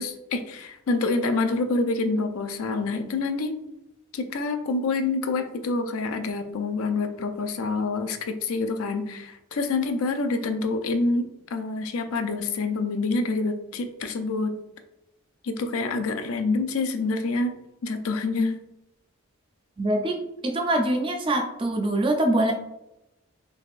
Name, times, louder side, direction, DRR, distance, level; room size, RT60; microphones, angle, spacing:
voice 1, 0.0-3.6 4.1-14.5 15.4-17.5 17.8-18.6, left 3 dB, 75° left, 8 dB, 0.4 m, -27 dB
voice 2, 19.8-22.5, right 1 dB, 25° right, 4 dB, 0.4 m, -24 dB
3.4 x 3.2 x 2.4 m, 0.86 s
head